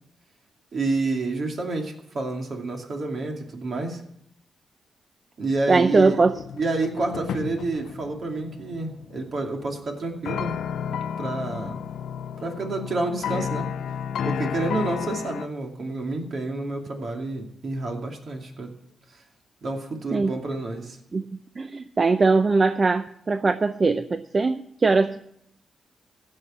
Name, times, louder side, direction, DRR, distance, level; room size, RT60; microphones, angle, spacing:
voice 1, 0.7-4.0 5.4-6.2 6.5-10.5 11.2-11.8 12.4-13.7 14.2-18.7 19.1-19.2 19.6-21.0, right 2 dB, 55° right, 2 dB, 2.5 m, -29 dB
voice 2, 5.7-6.3 20.1-20.4 21.1-25.2, right 3 dB, 35° right, 10 dB, 0.5 m, -21 dB
sound 1, 6.0-15.5, left 7 dB, 85° left, 0.5 m, -32 dB
16.0 x 6.5 x 7.3 m, 0.73 s
cardioid pair, 100°, 0 cm